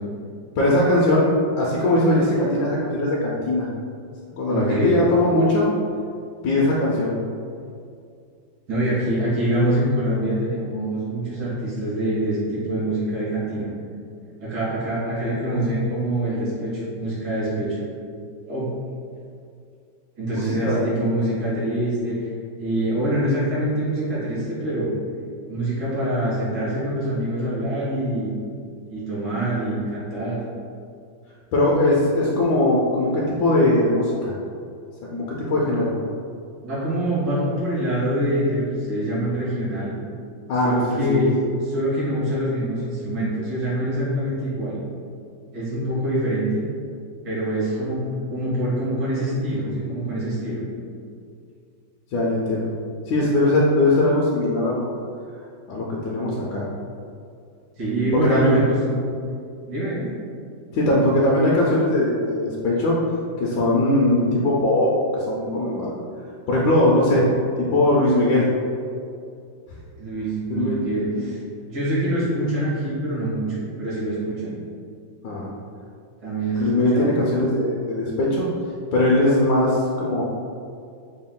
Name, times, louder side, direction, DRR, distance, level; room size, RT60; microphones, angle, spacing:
voice 1, 0.6-1.3 1.6-3.7 4.4-5.7 6.4-7.2 20.3-20.8 31.5-34.3 35.1-35.9 40.5-41.2 52.1-52.7 53.1-54.9 55.7-56.7 58.2-58.6 60.7-63.0 63.4-65.9 66.5-67.3 67.6-68.5 70.5-71.3 75.2-75.5 76.6-78.5 78.9-80.2, left 1 dB, 70° left, -5 dB, 1.0 m, -20 dB
voice 2, 4.5-5.0 8.7-13.7 14.4-17.8 18.5-18.7 20.2-22.2 22.6-24.9 25.4-28.3 28.9-30.4 36.6-39.9 40.6-41.4 41.6-44.8 45.5-46.7 47.2-50.6 57.8-59.0 59.6-60.1 70.0-74.6 76.2-77.1, right 1 dB, 80° right, -9 dB, 2.3 m, -25 dB
5.1 x 2.3 x 3.6 m, 2.4 s
omnidirectional pair, 2.1 m